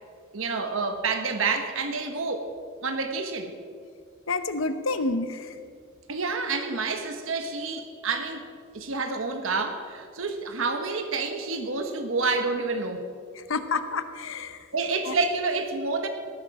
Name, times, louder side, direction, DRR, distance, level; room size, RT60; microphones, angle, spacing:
voice 1, 0.3-2.5 2.8-3.5 6.1-8.4 8.7-13.0 14.7-16.1, right 4 dB, 70° right, 6 dB, 1.1 m, -28 dB
voice 2, 4.3-5.5 13.4-14.7 15.0-15.2, left 3 dB, 70° left, 10 dB, 0.9 m, -29 dB
17.5 x 10.0 x 4.8 m, 2.2 s
head